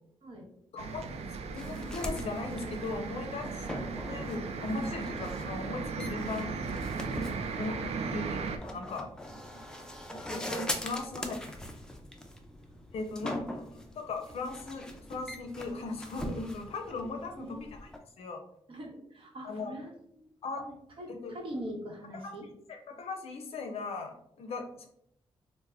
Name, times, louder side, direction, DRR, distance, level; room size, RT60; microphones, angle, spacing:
voice 1, 0.7-1.1 1.5-3.7 4.1-6.6 7.1-7.8 8.1-8.2 8.6-9.1 10.3-11.6 12.9-13.4 14.0-17.9 18.2-18.4 19.4-19.7 20.4-20.6 21.2-21.3 22.2-22.3 22.7-24.9, left 3 dB, 70° left, 4 dB, 0.5 m, -38 dB
sound 1, 0.8-8.6, right 4 dB, 80° right, 0.4 m, -37 dB
sound 2, 1.6-18.0, equal, 5° left, 0.4 m, -42 dB
voice 2, 17.4-17.7 18.7-20.3 20.6-22.5, right 1 dB, 60° right, 0 dB, 1.0 m, -43 dB
3.3 x 2.1 x 3.4 m, 0.71 s
wide cardioid pair, 120°, 11 cm